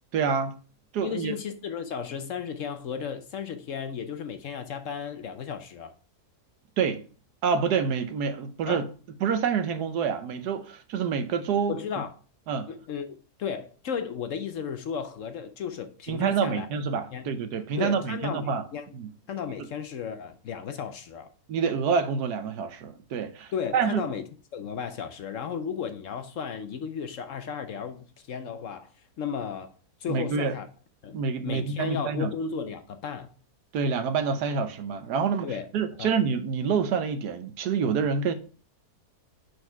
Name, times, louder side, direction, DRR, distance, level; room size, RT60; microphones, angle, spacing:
voice 1, 0.1-0.6 0.9-1.4 6.8-7.0 7.4-8.9 9.2-11.8 12.5-12.7 16.1-18.7 18.9-19.1 21.5-24.0 30.1-30.5 31.1-32.3 33.7-38.3, right 6 dB, 80° right, 1.3 m, -27 dB
voice 2, 1.0-5.9 8.7-8.8 11.7-12.1 12.7-16.7 17.1-17.3 17.8-18.9 19.3-21.3 23.5-24.3 24.5-28.9 29.2-29.7 30.0-30.7 31.0-33.3 35.4-35.7 36.0-36.2, left 7 dB, 60° left, 0.9 m, -34 dB
6.4 x 4.9 x 4.5 m
omnidirectional pair, 1.7 m